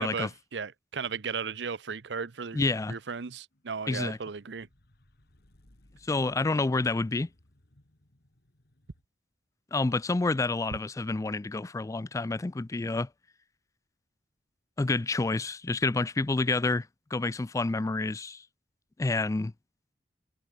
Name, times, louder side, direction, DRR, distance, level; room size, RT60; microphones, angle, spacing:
voice 1, 0.0-2.6 2.9-4.7, right 5 dB, 85° right, 0.7 m, -35 dB
voice 2, 2.5-3.0 3.9-4.2 6.0-7.3 9.7-13.1 14.8-18.4 19.0-19.5, left 3 dB, 20° left, 0.4 m, -28 dB
sound 1, 3.5-9.0, left 1 dB, 65° left, 2.3 m, -64 dB
head